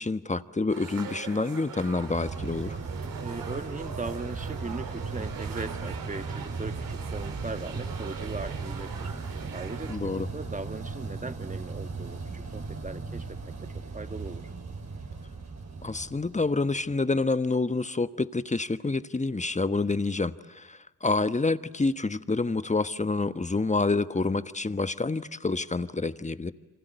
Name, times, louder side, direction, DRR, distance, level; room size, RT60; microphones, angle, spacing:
voice 1, 0.0-2.8 9.9-10.3 15.8-26.5, left 3 dB, 20° left, 12 dB, 1.3 m, -28 dB
sound 1, 0.7-10.0, right 6 dB, 80° right, 3.4 m, -42 dB
sound 2, 1.9-16.9, right 4 dB, 55° right, 4.9 m, -37 dB
voice 2, 3.2-9.1 9.5-13.4 13.7-14.5, right 3 dB, 25° right, 10 dB, 1.6 m, -39 dB
28.5 x 26.0 x 8.1 m, 1.2 s
supercardioid pair, 50°, 33 cm